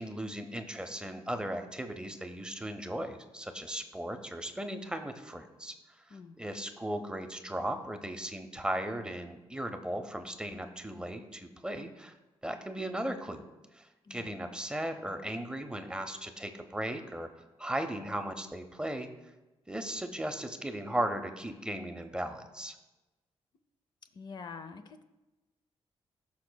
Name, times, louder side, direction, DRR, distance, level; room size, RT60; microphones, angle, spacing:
voice 1, 0.0-12.1 12.4-13.5 13.7-17.3 17.6-19.1 19.7-22.8, right 1 dB, 10° right, 7 dB, 0.6 m, -37 dB
voice 2, 14.1-14.4 24.1-25.0, left 5 dB, 45° left, 8 dB, 0.5 m, -46 dB
17.0 x 5.8 x 2.2 m, 1.1 s
wide cardioid pair, 135°, 11 cm